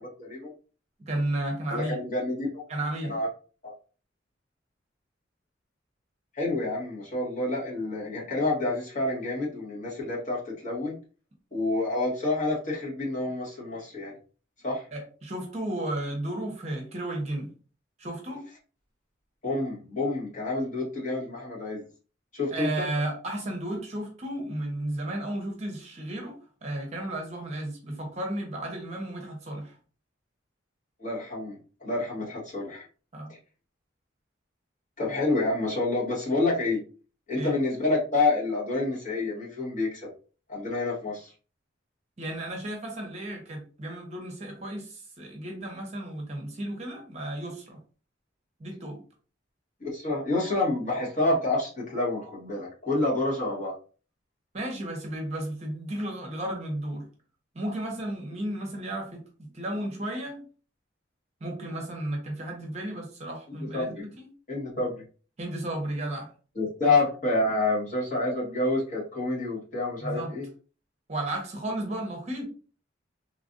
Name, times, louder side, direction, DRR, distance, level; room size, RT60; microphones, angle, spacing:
voice 1, 0.2-0.5 1.7-2.6 3.1-3.3 3.6-3.7 6.3-11.0 11.5-14.2 14.6-14.9 19.4-21.9 22.3-22.9 31.0-32.9 33.3-33.4 35.0-36.8 37.3-40.1 40.5-41.3 49.8-53.7 63.5-64.1 64.5-65.0 66.5-70.5, left 2 dB, 40° left, -5 dB, 1.3 m, -28 dB
voice 2, 1.0-1.9 2.7-3.2 14.9-17.5 18.0-18.4 22.5-26.3 26.6-29.7 33.1-33.3 37.3-37.5 42.2-47.8 48.6-49.0 54.5-57.0 57.5-60.4 61.4-64.3 65.4-66.3 70.0-70.3 71.1-72.4, right 1 dB, 35° right, 1 dB, 0.8 m, -33 dB
3.3 x 2.4 x 2.5 m, 0.38 s
head